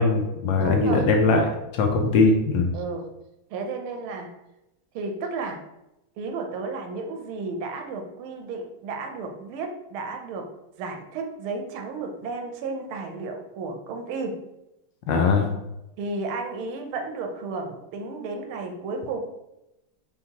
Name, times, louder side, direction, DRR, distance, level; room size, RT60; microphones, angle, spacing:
voice 1, 0.0-1.4 1.8-2.7 15.1-15.5, left 3 dB, 70° left, 3 dB, 1.2 m, -20 dB
voice 2, 0.6-1.6 2.7-3.1 3.5-4.3 4.9-5.6 6.2-10.5 10.8-14.4 16.0-19.2, right 3 dB, 85° right, 4 dB, 1.5 m, -33 dB
4.6 x 3.6 x 2.8 m, 0.90 s
omnidirectional pair, 2.3 m